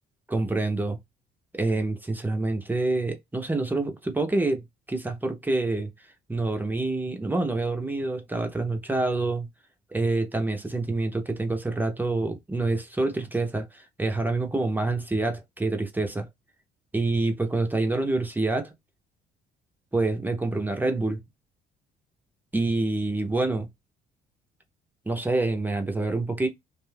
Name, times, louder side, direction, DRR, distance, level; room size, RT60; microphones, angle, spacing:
voice 1, 0.3-1.0 1.5-5.9 6.3-9.5 9.9-16.3 16.9-18.7 19.9-21.2 22.5-23.7 25.1-26.5, right 2 dB, 10° right, 0.6 m, -27 dB
2.5 x 2.2 x 3.2 m
cardioid pair, 110°, 17 cm